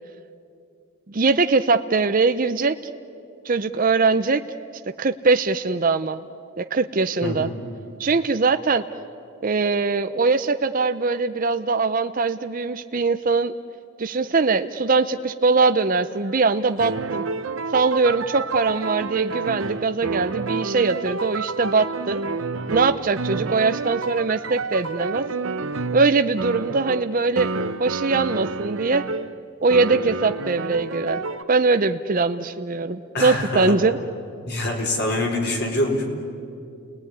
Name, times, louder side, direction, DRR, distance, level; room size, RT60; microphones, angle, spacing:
voice 1, 1.1-2.8 3.4-4.4 5.0-6.2 6.6-7.5 8.0-8.8 9.4-13.5 14.0-17.2 17.7-22.2 22.7-25.3 25.9-27.5 27.8-29.0 29.6-31.2 31.5-34.0, right 4 dB, 40° right, 8 dB, 0.6 m, -21 dB
voice 2, 7.2-7.5 33.1-33.8 34.5-36.1, left 1 dB, 50° left, 1 dB, 4.5 m, -24 dB
sound 1, 16.1-29.3 29.7-31.4, right 4 dB, 65° right, 0.8 m, -29 dB
29.5 x 20.0 x 9.7 m, 2.4 s
head